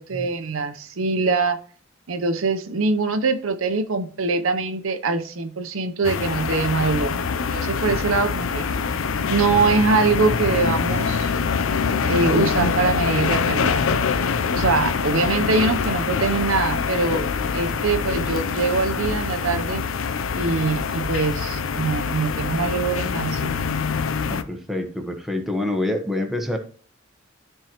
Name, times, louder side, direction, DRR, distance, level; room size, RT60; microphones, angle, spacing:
voice 1, 0.0-1.6 2.1-7.2 7.5-8.7 9.3-11.3 12.1-13.8 14.5-19.8 20.4-23.7, right 4 dB, 90° right, 0.8 m, -23 dB
sound 1, 6.0-24.4, left 5 dB, 85° left, 0.6 m, -24 dB
voice 2, 24.3-26.6, left 1 dB, ahead, 1.1 m, -26 dB
13.0 x 4.5 x 3.0 m
head